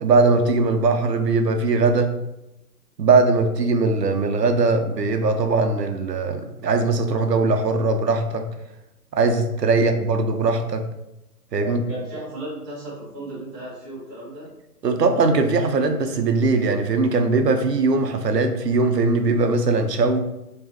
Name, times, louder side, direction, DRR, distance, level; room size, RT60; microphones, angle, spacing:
voice 1, 0.0-2.1 3.0-8.5 9.1-10.9 11.5-11.8 14.8-20.2, right 3 dB, 80° right, 6 dB, 0.7 m, -20 dB
voice 2, 11.6-14.5, right 1 dB, 20° right, -11 dB, 1.4 m, -35 dB
3.5 x 3.0 x 2.9 m, 0.91 s
figure-of-eight pair, 145°, 48 cm